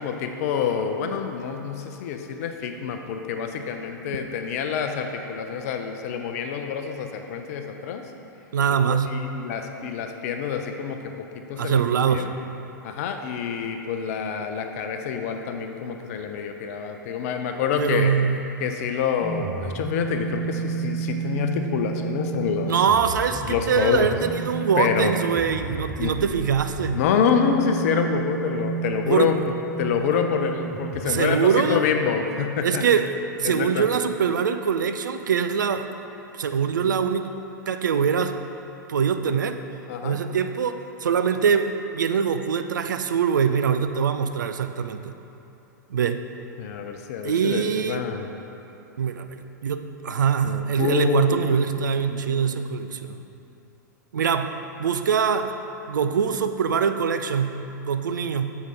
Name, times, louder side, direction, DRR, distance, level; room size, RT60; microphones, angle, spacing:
voice 1, 0.0-8.0 8.9-11.8 12.1-12.3 12.8-18.1 18.6-22.7 23.5-24.2 24.8-25.1 26.0-26.1 26.9-29.4 29.8-32.9 33.4-33.9 39.9-40.2 46.6-48.3 50.4-51.6 52.1-52.6, left 7 dB, 50° left, 5 dB, 0.6 m, -27 dB
voice 2, 8.5-9.2 11.6-12.3 17.8-18.4 22.7-27.0 29.1-29.3 31.0-31.8 32.6-33.1 33.4-35.9 36.4-37.3 37.7-38.4 38.9-39.6 40.0-45.1 45.9-46.2 47.2-48.0 49.0-53.2 54.1-54.5 54.8-55.5 55.9-58.6, right 7 dB, 70° right, 9 dB, 0.4 m, -23 dB
sound 1, 19.2-32.0, right 6 dB, 15° right, 0.5 m, -32 dB
6.9 x 4.8 x 4.2 m, 2.9 s
figure-of-eight pair, 100°, 10 cm